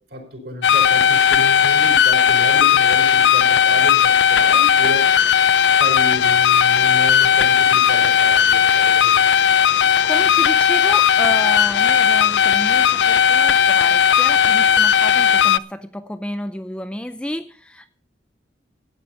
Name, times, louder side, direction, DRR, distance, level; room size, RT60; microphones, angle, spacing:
voice 1, 0.1-5.1 5.7-9.3, equal, 60° right, 2 dB, 4.6 m, -31 dB
sound 1, 0.6-15.6, left 8 dB, 70° left, 0.5 m, -16 dB
voice 2, 10.0-17.9, left 1 dB, 5° left, 9 dB, 0.5 m, -31 dB
14.5 x 9.4 x 5.5 m, 0.44 s
head